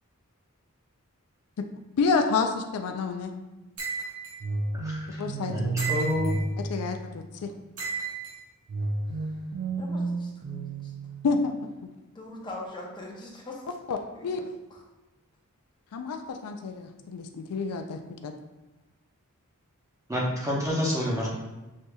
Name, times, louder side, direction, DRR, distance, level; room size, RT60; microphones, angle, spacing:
voice 1, 2.0-3.3 5.2-5.7 6.6-7.5 11.2-11.6 13.9-14.0 14.2-14.4 15.9-18.3, left 4 dB, 80° left, 6 dB, 0.4 m, -29 dB
sound 1, 3.8-4.4 5.8-6.4 7.8-8.4, right 6 dB, 80° right, 1.3 m, -33 dB
sound 2, 4.4-7.5 8.7-11.6, right 2 dB, 45° right, 0.3 m, -32 dB
voice 2, 4.7-5.2 5.5-5.6 5.9-6.3 20.1-21.3, left 1 dB, 15° right, -4 dB, 0.9 m, -28 dB
voice 3, 9.8-10.3 10.6-10.9 12.1-13.7 14.1-14.8, left 2 dB, 20° left, -2 dB, 0.7 m, -42 dB
6.3 x 2.7 x 2.2 m, 1.1 s
head